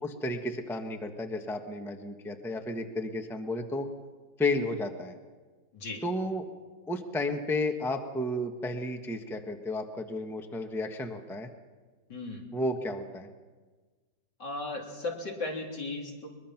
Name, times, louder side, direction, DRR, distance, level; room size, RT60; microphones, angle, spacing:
voice 1, 0.0-3.9 4.4-5.1 6.0-6.4 6.9-11.5 12.5-13.3, left 1 dB, ahead, 5 dB, 1.1 m, -32 dB
voice 2, 5.7-6.0 12.1-12.4 14.4-16.3, left 2 dB, 70° left, 0 dB, 4.0 m, -36 dB
22.5 x 22.0 x 5.9 m, 1.4 s
omnidirectional pair, 2.0 m